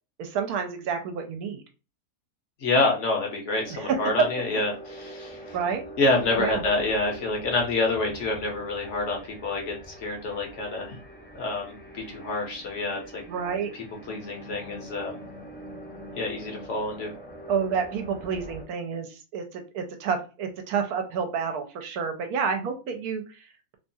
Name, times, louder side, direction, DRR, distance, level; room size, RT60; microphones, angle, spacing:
voice 1, 0.2-1.6 3.7-4.3 5.5-5.8 6.4-6.6 13.3-13.7 17.5-23.8, right 6 dB, 80° right, 6 dB, 1.1 m, -29 dB
voice 2, 2.6-5.6 6.0-11.0 11.3-13.2 13.7-15.2 16.1-17.1, left 2 dB, 60° left, 1 dB, 0.9 m, -27 dB
sound 1, 3.6-18.6, right 1 dB, 15° left, 0.3 m, -44 dB
2.9 x 2.3 x 2.6 m, 0.32 s
omnidirectional pair, 1.6 m